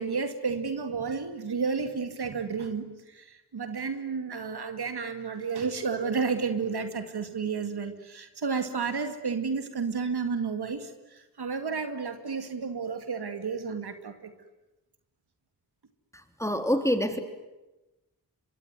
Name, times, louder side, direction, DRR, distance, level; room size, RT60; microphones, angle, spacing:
voice 1, 0.0-14.3, right 5 dB, 85° right, 8 dB, 2.3 m, -31 dB
voice 2, 16.1-17.2, equal, 10° left, 7 dB, 3.5 m, -27 dB
26.0 x 23.0 x 9.6 m, 1.0 s
cardioid pair, 45°, 38 cm